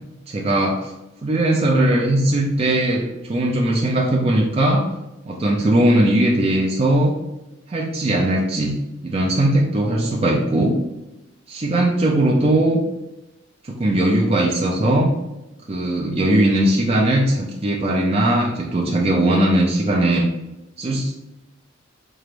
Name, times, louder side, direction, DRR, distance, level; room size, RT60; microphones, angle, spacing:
voice 1, 0.3-0.9 1.2-4.8 5.3-7.1 7.7-8.8 9.0-10.8 11.5-12.8 13.6-15.1 15.7-20.2 20.8-21.1, right 1 dB, 30° right, -2 dB, 0.4 m, -19 dB
4.4 x 2.5 x 3.3 m, 0.97 s
head